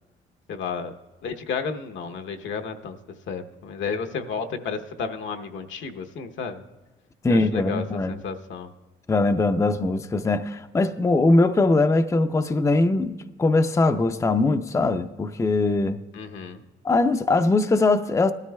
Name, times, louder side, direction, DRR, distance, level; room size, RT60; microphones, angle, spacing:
voice 1, 0.5-0.9 1.2-3.0 3.3-6.6 7.3-8.7 16.1-16.6, left 5 dB, 70° left, 0.9 m, -32 dB
voice 2, 7.2-8.2 9.1-16.0 16.8-18.3, left 2 dB, 15° left, 0.5 m, -21 dB
19.0 x 13.0 x 2.3 m
cardioid pair, 90°, 20 cm